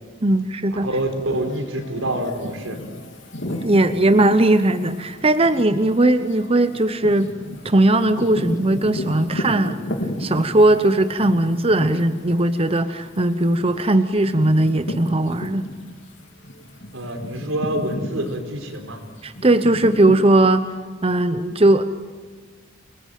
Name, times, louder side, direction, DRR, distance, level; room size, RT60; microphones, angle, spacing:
voice 1, 0.2-0.9 3.6-7.3 7.6-9.8 10.2-15.7 19.2-20.7 21.0-21.8, right 1 dB, 30° right, 10 dB, 0.9 m, -18 dB
voice 2, 0.8-2.8 16.9-19.0, right 1 dB, 85° right, 5 dB, 4.6 m, -26 dB
sound 1, 0.9-16.1 16.4-20.3, equal, 65° left, 3.5 m, -34 dB
29.0 x 20.0 x 9.3 m, 1.4 s
head